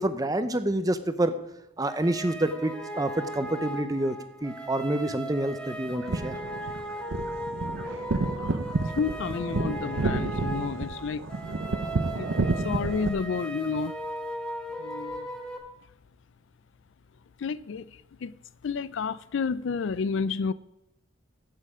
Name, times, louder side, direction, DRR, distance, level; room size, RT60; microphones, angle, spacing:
voice 1, 0.0-1.4 1.8-6.3, right 1 dB, 20° right, 0.7 m, -28 dB
sound 1, 1.9-15.6, right 1 dB, 5° left, 1.2 m, -37 dB
sound 2, 5.9-13.1, right 3 dB, 75° right, 0.7 m, -30 dB
voice 2, 8.8-13.9 14.8-15.3 17.4-18.3 18.6-20.5, left 5 dB, 65° left, 0.4 m, -31 dB
15.5 x 6.6 x 4.9 m
head